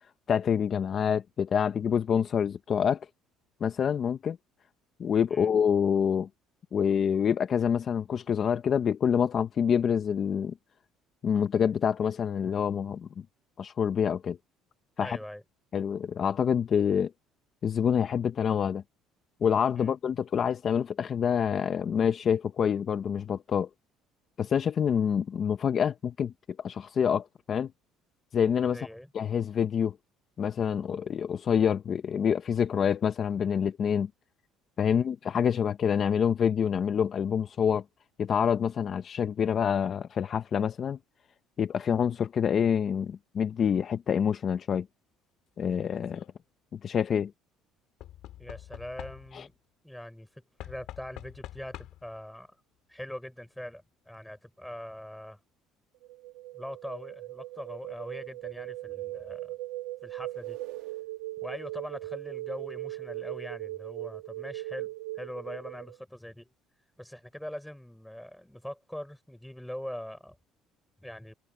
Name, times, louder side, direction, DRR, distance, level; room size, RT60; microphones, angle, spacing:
voice 1, 0.3-3.1 3.6-4.4 5.0-6.3 6.7-10.5 11.2-13.1 13.6-14.4 15.0-15.2 15.7-17.1 17.6-18.8 19.4-23.7 24.4-26.3 26.6-27.7 28.3-28.9 29.1-29.9 30.4-34.1 34.8-37.8 38.2-41.0 41.6-44.9 45.6-46.2 46.7-47.3 49.3-49.5, left 7 dB, 35° left, 0.7 m, -27 dB
voice 2, 15.0-15.4 19.7-20.0 28.7-29.1 34.9-35.1 48.4-49.6 49.8-52.6 52.9-55.4 56.5-59.6 60.0-60.6 61.4-64.9 65.2-66.5 67.0-70.4 71.0-71.3, equal, ahead, 5.3 m, -42 dB
Knock / Wood, 45.8-46.3 48.0-49.5 50.6-52.2 53.2-53.3 53.5-53.6, left 13 dB, 65° left, 1.9 m, -46 dB
sound 1, 56.0-66.0, right 17 dB, 80° right, 2.0 m, -39 dB
cardioid pair, 135°, 0 cm